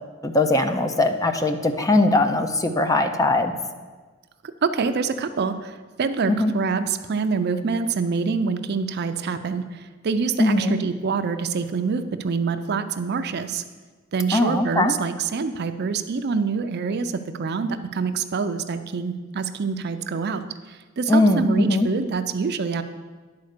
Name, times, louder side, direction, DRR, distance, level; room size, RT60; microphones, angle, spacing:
voice 1, 0.2-3.5 6.3-6.5 10.4-10.7 14.3-14.9 21.1-21.9, left 2 dB, 15° left, 7 dB, 0.5 m, -20 dB
voice 2, 4.6-13.6 14.1-22.8, right 5 dB, 55° right, 10 dB, 0.5 m, -26 dB
10.5 x 4.3 x 6.5 m, 1.4 s
head